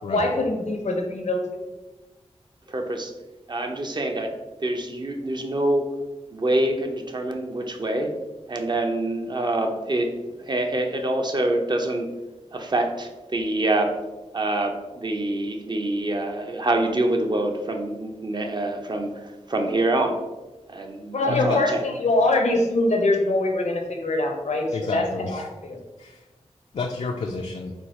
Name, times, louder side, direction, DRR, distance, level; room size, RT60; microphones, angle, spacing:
voice 1, 0.1-1.6 21.1-25.8, left 2 dB, 85° left, 2 dB, 0.8 m, -24 dB
voice 2, 2.7-3.1 3.5-4.3 4.6-5.9 6.3-8.1 8.5-10.1 10.4-12.1 12.5-13.9 14.3-20.2 20.7-21.8, right 1 dB, 40° right, 3 dB, 0.7 m, -25 dB
voice 3, 21.3-21.6 24.7-25.5 26.0-26.2 26.7-27.7, left 3 dB, 65° left, 1 dB, 0.4 m, -29 dB
4.4 x 2.4 x 4.3 m, 1.1 s
wide cardioid pair, 65°, 12 cm